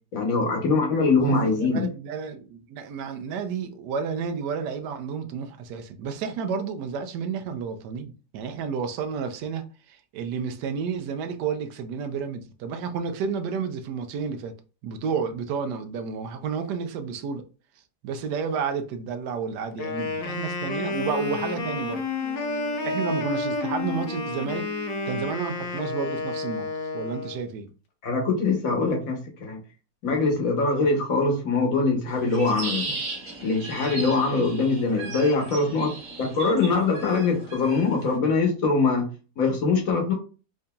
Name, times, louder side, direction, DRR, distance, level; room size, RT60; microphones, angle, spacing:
voice 1, 0.1-1.9 28.0-29.6 30.0-32.9 33.4-39.0 39.4-40.1, left 3 dB, 55° left, 1.3 m, -23 dB
voice 2, 1.2-14.5 14.8-17.4 18.0-22.0 22.8-24.7 25.0-26.7 26.9-27.7, right 6 dB, 75° right, 1.2 m, -31 dB
Wind instrument woodwind instrument, 19.7-27.4, left 4 dB, 85° left, 1.3 m, -30 dB
Human voice, 20.9-25.9, right 2 dB, 25° right, 1.6 m, -40 dB
sound 1, 32.1-38.2, right 3 dB, 50° right, 1.2 m, -37 dB
4.8 x 2.7 x 2.2 m
omnidirectional pair, 1.9 m